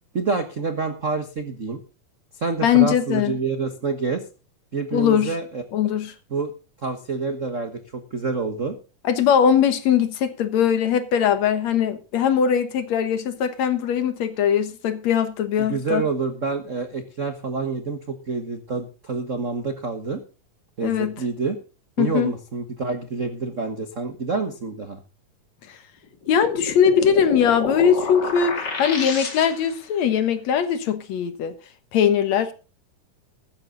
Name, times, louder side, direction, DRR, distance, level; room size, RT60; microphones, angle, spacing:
voice 1, 0.1-1.8 2.3-4.2 4.7-5.6 6.3-6.5 6.8-8.8 15.6-20.2 20.8-21.6 22.0-25.0, right 4 dB, 55° right, 0.8 m, -27 dB
voice 2, 2.6-3.4 4.9-5.3 5.7-6.1 9.0-16.0 20.8-21.1 22.0-22.3 26.3-31.5 31.9-32.5, left 8 dB, 65° left, 2.4 m, -20 dB
sound 1, 26.2-29.8, left 4 dB, 35° left, 2.6 m, -30 dB
14.5 x 13.0 x 3.9 m
omnidirectional pair, 3.5 m